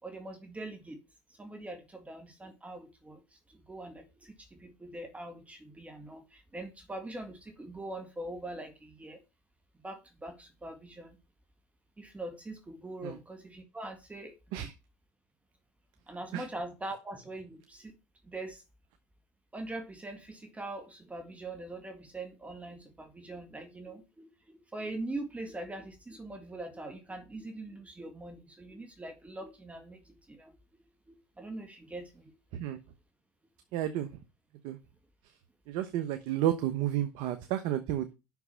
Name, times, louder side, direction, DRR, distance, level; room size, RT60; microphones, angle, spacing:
voice 1, 0.0-1.0 1.4-9.2 9.8-11.2 12.0-14.7 16.1-17.9 18.2-18.6 19.5-30.5 31.1-32.3, right 2 dB, 15° right, 1.9 m, -43 dB
voice 2, 33.7-34.2 34.6-34.8 35.7-38.1, right 11 dB, 65° right, 1.1 m, -31 dB
6.2 x 5.9 x 7.1 m
hypercardioid pair, 90°, 9 cm